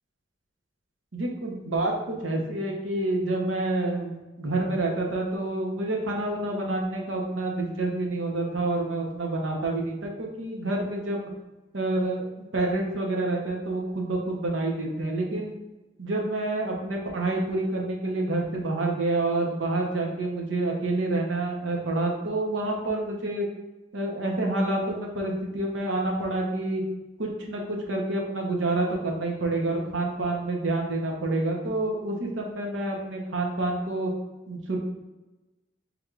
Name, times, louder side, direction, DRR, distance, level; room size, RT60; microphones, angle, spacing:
voice 1, 1.1-11.3 11.7-15.5 16.0-23.5 23.9-26.8 27.2-34.1 34.5-34.8, right 2 dB, 80° right, 0 dB, 0.9 m, -28 dB
4.5 x 3.4 x 2.5 m, 1.1 s
head